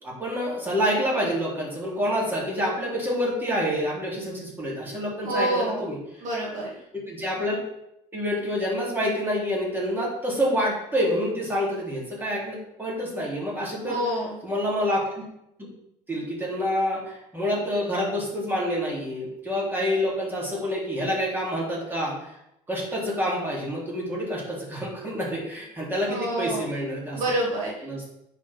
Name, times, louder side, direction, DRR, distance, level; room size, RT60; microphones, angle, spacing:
voice 1, 0.0-6.0 7.1-7.6 8.1-14.0 14.4-15.3 16.1-22.3 22.7-27.2 27.8-28.1, equal, 15° right, -5 dB, 2.9 m, -27 dB
voice 2, 5.2-5.8 6.2-6.8 13.8-14.4 26.1-26.6 27.1-27.7, right 1 dB, 60° right, -3 dB, 2.3 m, -27 dB
9.5 x 4.6 x 3.6 m, 0.82 s
cardioid pair, 125°, 14 cm